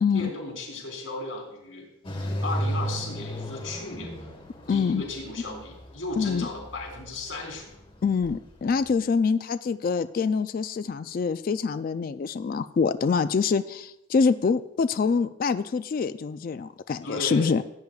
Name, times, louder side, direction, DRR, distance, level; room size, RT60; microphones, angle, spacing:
voice 1, 0.1-1.9 2.4-4.3 4.7-7.7 17.0-17.5, left 2 dB, 80° left, -2 dB, 3.6 m, -35 dB
sound 1, 2.0-8.9, equal, 25° left, 1.4 m, -35 dB
voice 2, 4.7-5.0 6.2-6.5 8.0-17.6, left 5 dB, 45° left, 11 dB, 0.3 m, -25 dB
16.0 x 8.9 x 2.4 m, 0.85 s
head